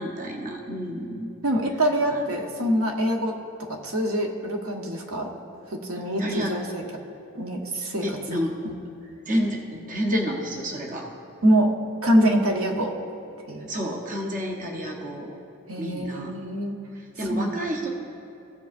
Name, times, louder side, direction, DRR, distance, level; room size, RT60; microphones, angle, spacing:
voice 1, 0.0-1.3 2.1-2.2 6.2-6.6 8.0-8.5 9.3-11.1 13.7-15.4 15.8-16.3 17.2-17.9, equal, 35° right, 0 dB, 0.8 m, -29 dB
voice 2, 1.4-3.3 3.8-5.3 5.8-6.8 7.3-8.2 8.6-8.7 11.4-11.7 12.0-12.9 13.5-13.7 15.7-16.8 17.2-17.5, right 1 dB, 70° right, 2 dB, 0.9 m, -24 dB
15.5 x 8.1 x 2.5 m, 2.9 s
head